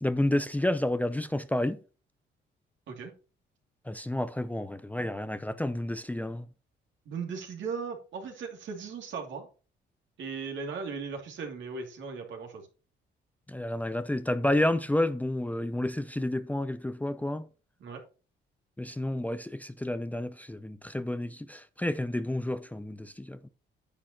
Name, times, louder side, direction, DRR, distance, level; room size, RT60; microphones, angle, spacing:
voice 1, 0.0-1.8 3.9-6.5 13.5-17.5 18.8-23.5, left 1 dB, 10° left, 0.6 m, -30 dB
voice 2, 7.0-9.5 10.2-12.7 17.8-18.0, right 5 dB, 70° right, 2.7 m, -37 dB
9.9 x 8.7 x 3.0 m
cardioid pair, 90°, 20 cm